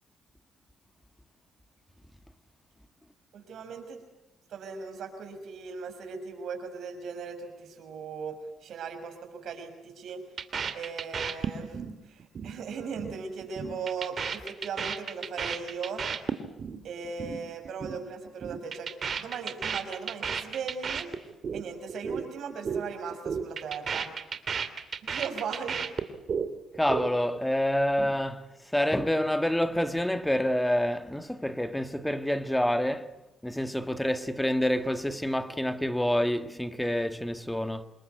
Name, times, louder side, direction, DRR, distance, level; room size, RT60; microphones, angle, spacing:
voice 1, 3.3-4.0 4.5-10.2 10.7-16.1 16.8-21.1 21.5-24.2 25.0-25.8, right 5 dB, 70° right, 6.2 m, -38 dB
sound 1, 10.4-11.9 12.2-12.5 12.8-13.1 13.4-16.8 17.0-17.4 17.6-18.0 18.3-21.6 21.9-22.2 22.5-22.8 23.1-26.5 26.7-27.4, right 6 dB, 50° right, 2.6 m, -33 dB
voice 2, 26.8-28.5 28.7-33.1 33.4-37.9, equal, 5° left, 1.7 m, -27 dB
27.5 x 21.5 x 9.5 m
cardioid pair, 90°, 0 cm